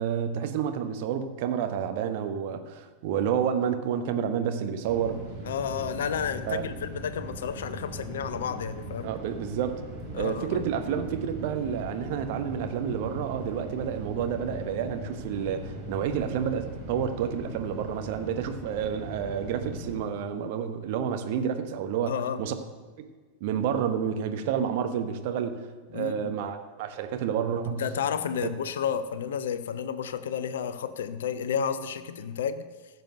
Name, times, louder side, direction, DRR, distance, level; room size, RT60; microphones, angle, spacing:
voice 1, 0.0-5.2 6.5-6.7 9.0-9.8 10.2-22.5 23.0-23.1 23.4-25.7 25.9-27.8 28.4-28.5, right 8 dB, 50° right, 8 dB, 1.1 m, -29 dB
sound 1, 4.9-20.0, right 1 dB, 35° right, 4.0 m, -40 dB
voice 2, 5.4-9.1 10.1-10.6 22.1-22.4 25.9-26.4 27.8-32.7, left 7 dB, 60° left, 12 dB, 0.7 m, -31 dB
14.0 x 6.9 x 6.5 m, 1.4 s
figure-of-eight pair, 90°, 0 cm